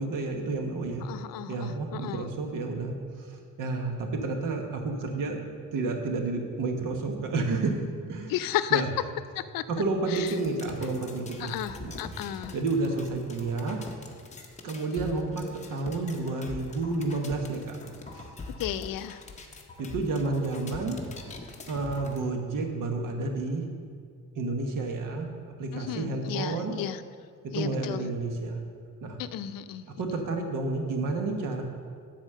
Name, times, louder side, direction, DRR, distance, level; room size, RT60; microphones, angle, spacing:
voice 1, 0.0-1.1 1.5-5.4 5.7-7.7 8.1-8.4 8.7-8.9 9.7-11.5 11.8-11.9 12.5-13.8 14.6-15.4 15.7-17.8 18.1-18.3 19.8-21.0 21.7-23.6 24.3-26.8 27.5-28.6 29.0-29.2 30.0-31.6, right 3 dB, 70° right, 3 dB, 1.2 m, -30 dB
voice 2, 1.0-2.3 8.3-8.8 9.5-9.6 10.1-10.3 11.4-12.5 18.6-19.2 25.7-27.0 27.5-28.1 29.2-29.8, left 12 dB, 85° left, 12 dB, 0.5 m, -33 dB
sound 1, 10.2-22.2, left 3 dB, 20° left, 0.7 m, -43 dB
10.0 x 4.2 x 7.5 m, 2.1 s
cardioid pair, 175°, 33 cm